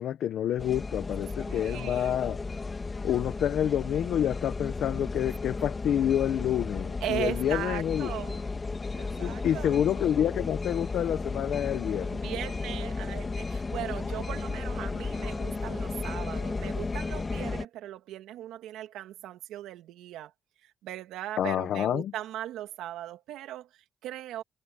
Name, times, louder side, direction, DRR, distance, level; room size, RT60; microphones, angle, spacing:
voice 1, 0.0-2.4 3.0-8.1 9.2-12.2 21.4-22.1, left 10 dB, 70° left, 1.1 m, -28 dB
sound 1, 0.6-17.6, left 3 dB, 30° left, 2.3 m, -34 dB
voice 2, 1.4-2.3 7.0-8.4 8.9-9.8 12.1-20.3 20.6-24.4, right 13 dB, 90° right, 2.9 m, -38 dB
cardioid pair, 90°, 0 cm